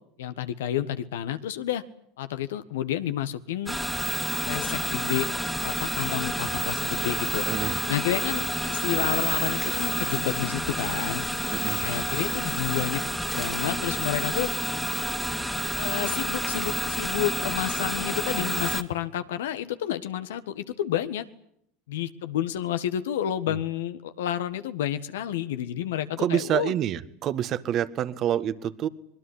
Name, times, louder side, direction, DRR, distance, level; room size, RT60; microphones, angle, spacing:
voice 1, 0.2-1.8 2.2-3.8 4.4-5.3 5.6-11.3 11.8-13.0 13.3-14.5 15.8-21.3 21.9-26.7, left 11 dB, 75° left, 11 dB, 1.6 m, -30 dB
sound 1, 3.7-18.8, equal, ahead, 2.1 m, -29 dB
voice 2, 7.5-7.8 11.5-11.9 23.5-23.6 26.2-28.9, right 10 dB, 45° right, 12 dB, 1.7 m, -27 dB
25.0 x 21.5 x 9.9 m, 0.72 s
hypercardioid pair, 90°, 0 cm